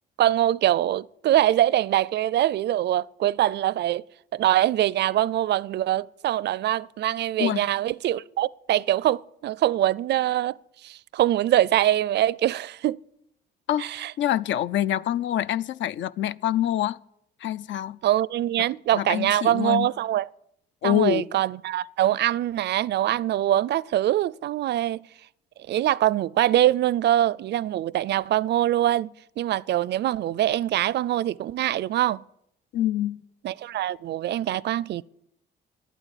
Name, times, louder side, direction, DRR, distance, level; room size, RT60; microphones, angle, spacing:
voice 1, 0.2-4.0 4.3-13.0 13.8-14.1 18.0-20.3 20.8-25.1 25.7-32.2 33.4-35.0, right 13 dB, 60° right, 0.4 m, -23 dB
voice 2, 7.4-7.7 13.7-17.0 17.4-18.0 18.9-19.9 20.8-21.3 32.7-33.2, left 11 dB, 70° left, 0.6 m, -26 dB
11.5 x 9.0 x 10.0 m
cardioid pair, 90°, 20 cm